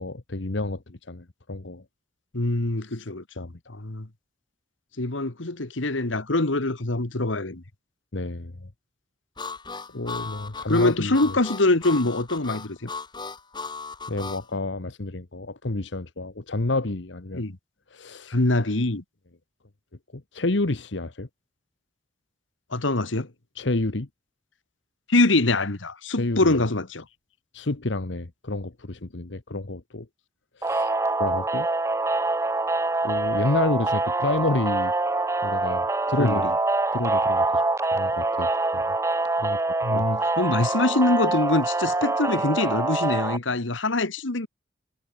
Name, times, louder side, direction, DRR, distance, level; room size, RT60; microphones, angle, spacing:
voice 1, 0.0-1.8 3.4-3.8 8.1-8.7 9.9-11.4 14.1-17.4 17.9-18.4 20.1-21.3 23.5-24.1 26.2-26.5 27.5-30.1 30.6-30.9 31.2-31.7 33.0-34.9 35.4-36.5 36.9-37.6 37.9-38.9 39.4-39.6 39.9-40.1, left 2 dB, 70° left, 1.2 m, -29 dB
voice 2, 2.3-4.1 5.0-7.6 10.7-12.9 17.3-17.6 18.3-19.0 22.7-23.3 25.1-27.0 36.2-36.5 39.8-44.5, left 2 dB, 85° left, 1.8 m, -24 dB
Harmonica, 9.4-14.4, left 4 dB, 25° left, 3.7 m, -36 dB
sound 1, 30.6-43.4, right 2 dB, 15° right, 0.6 m, -25 dB
head